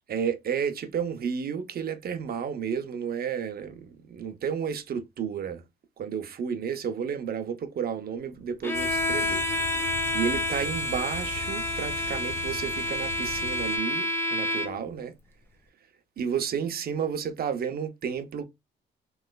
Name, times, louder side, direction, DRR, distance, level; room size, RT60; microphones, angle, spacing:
voice 1, 0.1-5.6 6.0-9.5 9.8-15.2 16.2-18.4, right 7 dB, 50° right, 0.5 m, -32 dB
Bowed string instrument, 8.6-14.9, left 1 dB, 10° left, 0.6 m, -29 dB
sound 1, 8.7-13.8, left 7 dB, 55° left, 0.6 m, -39 dB
3.1 x 3.0 x 2.2 m
cardioid pair, 90°, 20 cm